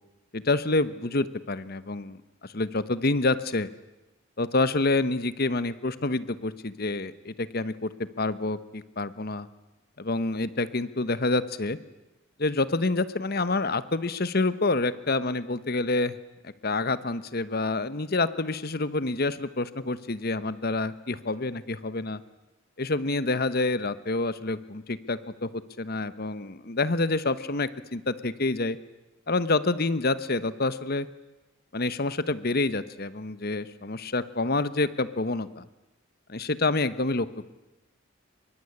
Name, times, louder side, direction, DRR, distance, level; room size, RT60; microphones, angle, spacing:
voice 1, 0.3-2.2 2.5-3.7 4.4-7.9 8.2-9.5 10.0-11.8 12.4-16.1 16.4-22.2 22.8-25.5 25.8-28.8 29.3-31.1 31.7-35.6 36.3-37.5, left 2 dB, 45° left, 14 dB, 1.1 m, -27 dB
25.0 x 22.5 x 9.9 m, 1.0 s
head